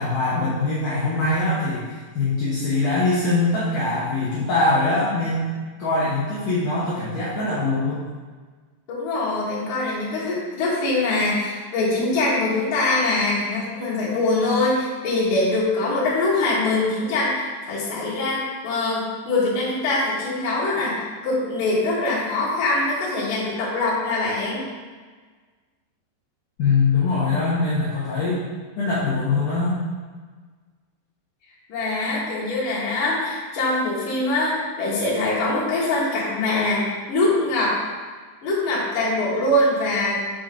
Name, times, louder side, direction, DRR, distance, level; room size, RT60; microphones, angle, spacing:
voice 1, 0.0-5.5 5.8-8.0 26.6-28.4 28.8-29.7, left 3 dB, 80° left, -8 dB, 1.8 m, -22 dB
voice 2, 8.9-24.7 31.7-37.8 38.4-40.1, left 2 dB, 60° left, -8 dB, 2.6 m, -23 dB
6.1 x 5.7 x 3.8 m, 1.5 s
omnidirectional pair, 5.4 m